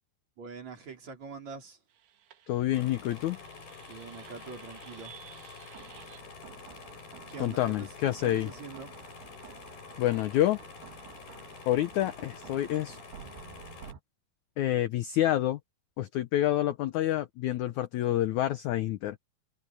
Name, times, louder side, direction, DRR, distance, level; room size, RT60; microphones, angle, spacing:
voice 1, 0.4-1.8 3.9-5.1 7.3-7.9 8.2-8.9, right 5 dB, 45° right, 4.9 m, -44 dB
sound 1, 1.9-14.0, right 10 dB, 90° right, 3.8 m, -52 dB
voice 2, 2.5-3.4 7.4-8.5 10.0-10.6 11.7-13.0 14.6-15.6 16.0-19.2, left 13 dB, 85° left, 1.7 m, -28 dB
sound 2, 2.7-13.9, left 4 dB, 65° left, 8.2 m, -48 dB
omnidirectional pair, 4.4 m